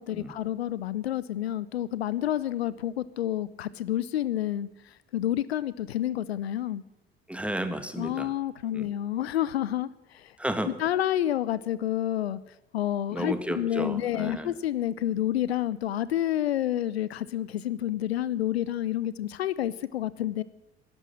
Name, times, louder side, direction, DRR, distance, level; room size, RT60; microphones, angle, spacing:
voice 1, 0.0-4.7 5.1-6.8 8.0-9.9 10.2-10.3 10.8-12.4 12.7-20.4, left 12 dB, 75° left, 19 dB, 0.5 m, -29 dB
voice 2, 7.3-8.3 8.7-8.9 10.4-10.7 13.1-14.5, right 1 dB, 5° right, 9 dB, 1.5 m, -32 dB
12.0 x 11.5 x 8.6 m, 0.93 s
figure-of-eight pair, 60°, 32 cm